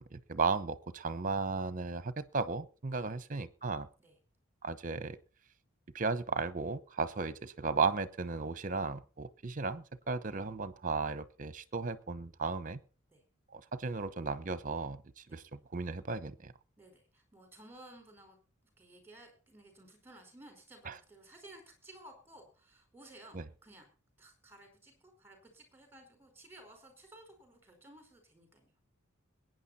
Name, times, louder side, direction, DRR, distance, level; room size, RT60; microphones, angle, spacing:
voice 1, 0.0-3.9 4.6-5.2 5.9-12.8 13.5-16.5 20.9-21.0 23.3-23.4, right 4 dB, 40° right, 15 dB, 0.9 m, -35 dB
voice 2, 2.9-3.2 4.0-4.2 13.1-13.2 15.3-15.4 16.8-18.4 18.6-23.9 24.2-28.7, right 1 dB, 10° right, 5 dB, 4.8 m, -56 dB
22.0 x 9.4 x 4.2 m, 0.36 s
head